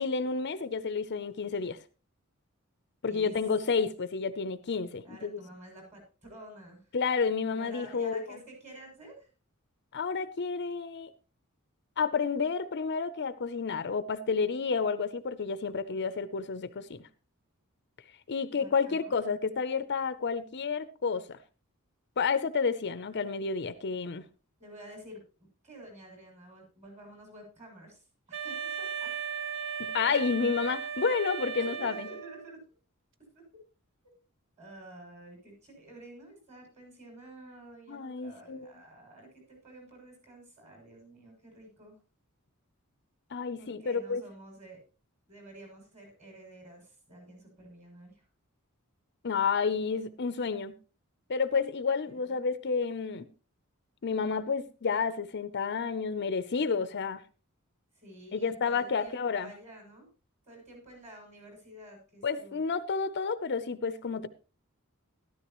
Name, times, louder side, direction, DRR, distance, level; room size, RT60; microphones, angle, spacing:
voice 1, 0.0-1.8 3.0-5.4 6.9-8.4 9.9-11.1 12.0-17.1 18.3-21.4 22.2-24.2 29.8-32.1 37.9-38.7 43.3-44.2 49.2-50.7 51.3-53.3 54.0-57.2 58.3-59.5 62.2-64.3, left 5 dB, 50° left, 0.6 m, -30 dB
voice 2, 3.0-3.5 5.0-6.8 7.5-9.3 15.6-16.0 18.6-19.1 24.6-25.2 25.6-29.1 31.6-32.6 33.3-33.5 34.6-42.0 43.6-44.8 45.3-48.2 52.0-52.4 57.9-60.1 60.4-62.6, right 1 dB, 35° right, 6.9 m, -50 dB
Wind instrument woodwind instrument, 28.3-32.5, right 7 dB, 60° right, 0.9 m, -36 dB
13.0 x 12.5 x 3.0 m
head